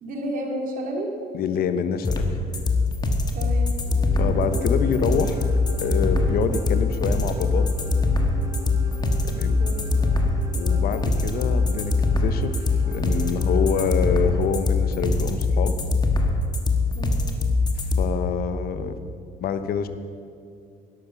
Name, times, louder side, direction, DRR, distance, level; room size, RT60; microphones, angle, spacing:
voice 1, 0.0-1.1 3.3-3.8 9.6-9.9 16.9-17.2, right 1 dB, 55° right, 0 dB, 2.8 m, -31 dB
voice 2, 1.3-2.3 4.2-7.7 9.0-9.6 10.5-15.8 17.8-19.0 19.4-19.9, left 7 dB, 65° left, 10 dB, 0.9 m, -27 dB
sound 1, 2.0-18.0, left 3 dB, 25° left, 1.4 m, -22 dB
sound 2, 3.8-15.1, right 1 dB, 20° right, 1.2 m, -39 dB
12.0 x 11.5 x 5.9 m, 2.4 s
cardioid pair, 110°, 17 cm